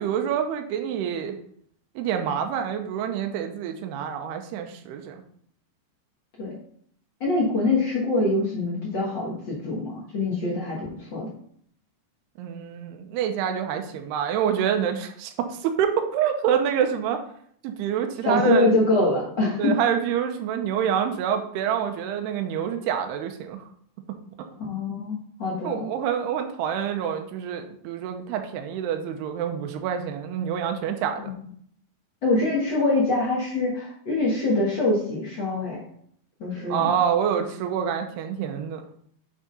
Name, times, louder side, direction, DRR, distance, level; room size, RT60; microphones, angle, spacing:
voice 1, 0.0-1.4 2.0-5.2 12.4-17.2 17.6-18.7 19.6-23.6 25.6-31.3 36.7-38.8, right 8 dB, 85° right, 5 dB, 2.8 m, -27 dB
voice 2, 7.2-11.3 18.2-19.8 24.6-25.9 31.2-31.3 32.2-35.8 36.4-36.9, left 2 dB, 80° left, -5 dB, 1.0 m, -24 dB
8.8 x 3.8 x 5.3 m, 0.63 s
omnidirectional pair, 4.7 m